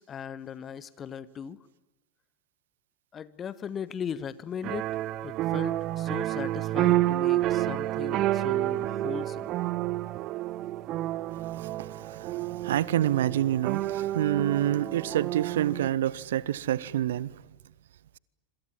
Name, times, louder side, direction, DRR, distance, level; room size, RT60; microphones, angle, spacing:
voice 1, 0.0-1.6 3.1-4.9 5.2-9.5, left 8 dB, 25° left, 1.3 m, -38 dB
sound 1, 4.6-15.9, right 15 dB, 35° right, 0.9 m, -29 dB
voice 2, 11.3-17.3, right 12 dB, 60° right, 0.9 m, -28 dB
27.0 x 26.0 x 7.5 m
figure-of-eight pair, 90°, 0 cm